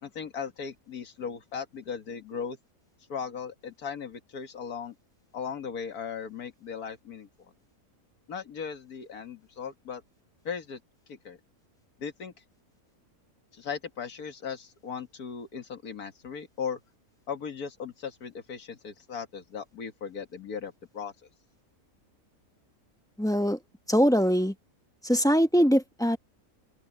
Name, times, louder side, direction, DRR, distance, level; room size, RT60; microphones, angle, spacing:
voice 1, 0.0-2.6 3.1-4.9 5.3-7.5 8.3-10.0 10.4-10.8 11.1-11.4 12.0-12.3 13.5-16.8 17.3-21.1, left 6 dB, 80° left, 2.2 m, -37 dB
voice 2, 23.2-23.6 23.9-24.5 25.0-26.2, equal, 5° left, 1.0 m, -22 dB
open air
omnidirectional pair, 1.6 m